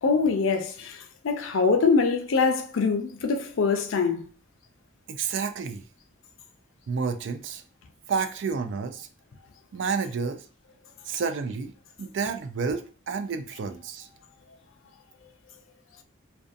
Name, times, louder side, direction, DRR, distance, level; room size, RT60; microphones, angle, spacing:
voice 1, 0.0-4.3, left 4 dB, 80° left, 0.4 m, -24 dB
voice 2, 5.1-5.8 6.9-7.6 8.1-9.1 9.7-10.4 11.0-11.7 12.0-14.1, right 5 dB, 65° right, 0.3 m, -30 dB
2.5 x 2.3 x 2.5 m
head